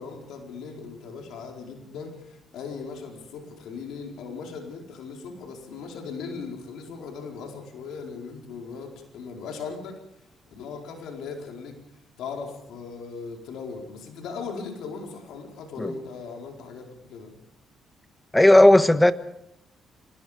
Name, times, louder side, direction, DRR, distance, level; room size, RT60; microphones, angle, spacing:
voice 1, 0.0-10.0 10.5-11.8 12.2-17.3, left 5 dB, 85° left, 4.6 m, -38 dB
voice 2, 18.3-19.1, left 1 dB, 10° left, 1.3 m, -15 dB
26.0 x 20.0 x 5.2 m
cardioid pair, 90°, 0 cm